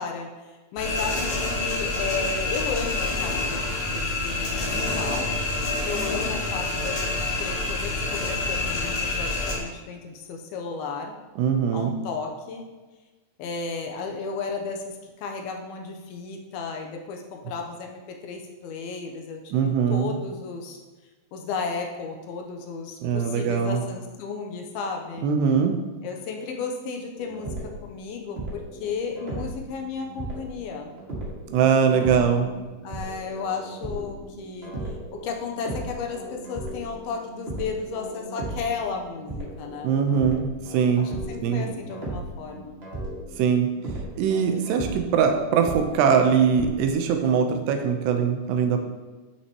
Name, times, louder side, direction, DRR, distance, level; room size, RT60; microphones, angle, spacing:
voice 1, 0.0-5.3 5.8-11.1 11.7-12.7 13.4-20.8 21.3-25.3 26.0-30.9 31.8-39.9 40.2-40.4 41.0-42.8, left 5 dB, 75° left, 2 dB, 2.6 m, -34 dB
sound 1, 0.8-9.5, left 2 dB, 60° left, 3.4 m, -27 dB
voice 2, 11.4-11.9 19.5-20.1 23.0-23.8 25.2-25.8 31.5-32.5 39.8-40.4 40.7-41.1 41.4-41.6 43.4-43.7 44.2-48.8, right 7 dB, 85° right, 5 dB, 3.0 m, -21 dB
sound 2, 27.2-27.9 28.4-46.9, right 2 dB, 45° right, 0.7 m, -37 dB
11.5 x 6.4 x 3.0 m, 1.3 s
omnidirectional pair, 4.7 m